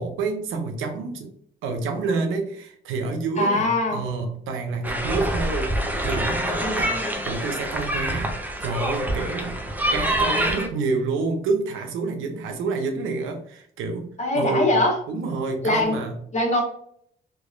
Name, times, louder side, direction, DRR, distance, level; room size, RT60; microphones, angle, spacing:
voice 1, 0.0-1.3 1.6-7.0 7.2-9.6 9.9-14.1 14.3-14.8 15.1-16.2, right 4 dB, 90° right, 5 dB, 0.7 m, -28 dB
voice 2, 3.4-4.0 6.6-7.2 14.2-15.0 15.6-16.0 16.3-16.6, left 1 dB, 35° left, -1 dB, 1.4 m, -22 dB
sound 1, 4.8-10.7, right 1 dB, 10° right, 0.7 m, -26 dB
3.5 x 3.0 x 2.4 m, 0.65 s
cardioid pair, 90°, 20 cm